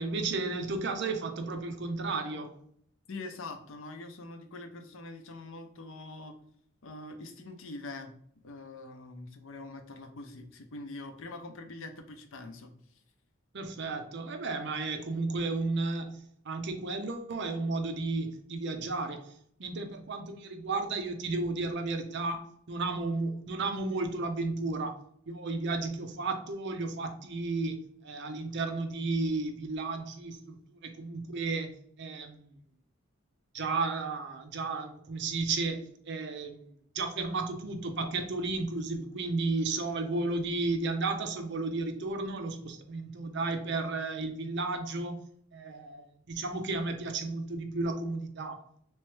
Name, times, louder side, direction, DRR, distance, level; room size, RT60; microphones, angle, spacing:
voice 1, 0.0-2.5 13.5-19.3 19.6-24.9 25.3-27.8 28.0-31.7 32.0-32.5 33.5-36.6 36.9-45.2 45.5-48.6, right 3 dB, 55° right, 0.6 m, -33 dB
voice 2, 3.1-6.3 6.8-8.1 8.4-12.7, left 2 dB, 75° left, 0.6 m, -44 dB
3.3 x 3.1 x 3.1 m
head